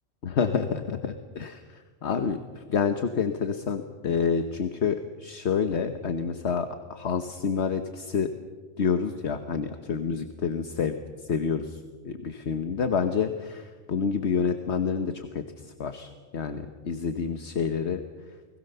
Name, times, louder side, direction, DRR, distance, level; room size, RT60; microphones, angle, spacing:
voice 1, 0.2-1.6 2.0-2.4 2.7-8.3 8.8-10.9 11.3-11.8 12.0-15.3 15.8-18.0, left 6 dB, 65° left, 8 dB, 1.4 m, -28 dB
29.5 x 20.5 x 6.8 m, 1.5 s
omnidirectional pair, 1.3 m